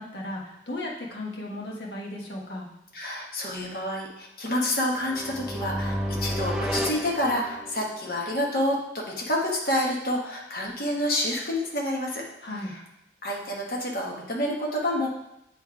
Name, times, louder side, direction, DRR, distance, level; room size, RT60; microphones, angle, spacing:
voice 1, 0.0-2.7 12.4-12.7, left 1 dB, 80° left, -2 dB, 1.4 m, -35 dB
voice 2, 2.9-12.2 12.7-12.8 13.2-15.1, left 1 dB, 55° left, -2 dB, 1.3 m, -28 dB
sound 1, 5.0-8.0, equal, 5° right, 0.5 m, -31 dB
7.8 x 3.3 x 4.7 m, 0.82 s
head